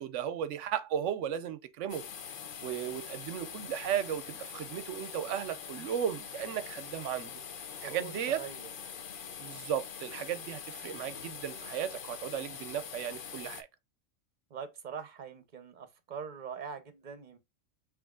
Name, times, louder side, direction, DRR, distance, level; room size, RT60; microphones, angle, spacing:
voice 1, 0.0-2.1 2.6-7.3 7.8-8.4 9.4-13.7, right 9 dB, 70° right, 0.9 m, -35 dB
sound 1, 1.9-13.6, left 7 dB, 55° left, 0.6 m, -44 dB
voice 2, 7.8-8.7 14.5-17.4, right 6 dB, 40° right, 0.8 m, -43 dB
6.1 x 3.0 x 2.3 m
omnidirectional pair, 1.4 m